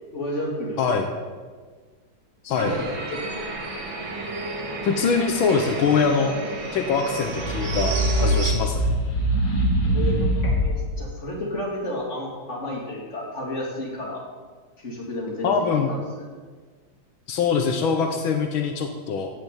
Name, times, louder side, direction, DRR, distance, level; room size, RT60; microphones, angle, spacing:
voice 1, 0.1-0.8 2.5-3.2 9.8-14.2 14.8-16.0, left 1 dB, 35° left, -2 dB, 3.6 m, -31 dB
sound 1, 2.6-8.5, right 3 dB, 70° right, 2.7 m, -32 dB
voice 2, 4.8-6.3 6.7-8.8 15.4-15.9 17.3-19.3, left 5 dB, 80° left, 5 dB, 1.9 m, -23 dB
sound 2, 7.2-10.8, right 1 dB, 60° left, 4.2 m, -23 dB
16.0 x 6.9 x 8.8 m, 1.5 s
omnidirectional pair, 2.2 m